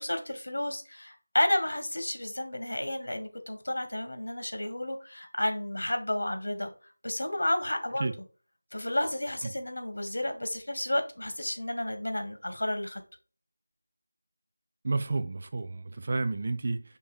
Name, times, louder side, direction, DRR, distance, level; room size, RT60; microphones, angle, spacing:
voice 1, 0.0-6.7 7.0-8.1 8.7-13.0, left 1 dB, 70° left, 1.7 m, -31 dB
voice 2, 14.8-16.8, right 3 dB, 25° right, 0.3 m, -30 dB
5.6 x 3.6 x 5.0 m
figure-of-eight pair, 180°, 0 cm